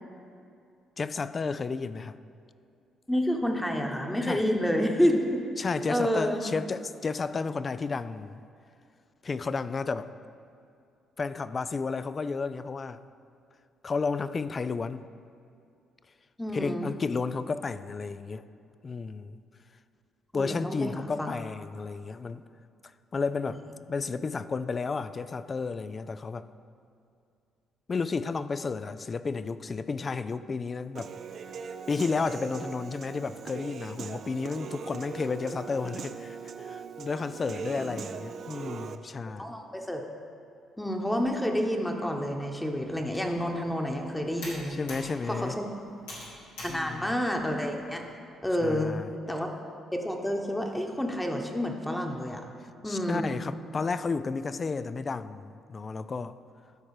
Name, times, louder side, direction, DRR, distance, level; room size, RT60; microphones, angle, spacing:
voice 1, 1.0-2.2 4.2-4.4 5.6-8.4 9.2-10.1 11.2-13.0 13.8-15.0 16.5-18.4 18.8-19.4 20.3-22.4 23.1-23.6 23.9-26.5 27.9-31.1 31.9-39.5 44.7-45.6 46.7-47.1 48.6-49.1 52.8-56.4, left 4 dB, 40° left, 14 dB, 0.3 m, -32 dB
voice 2, 3.1-5.2 5.9-6.4 16.4-16.9 20.3-21.3 37.8-37.9 39.4-40.0 40.8-44.8 45.2-45.7 46.6-48.0 48.4-48.9 49.3-49.6 49.9-52.4 52.8-53.3, equal, 10° left, 2 dB, 1.1 m, -29 dB
Human voice / Piano, 31.0-39.0, right 6 dB, 60° right, 0.4 m, -40 dB
Computer keyboard, 43.0-48.1, left 1 dB, 90° left, 2.3 m, -47 dB
13.0 x 4.4 x 4.9 m, 2.4 s
supercardioid pair, 60°, 0 cm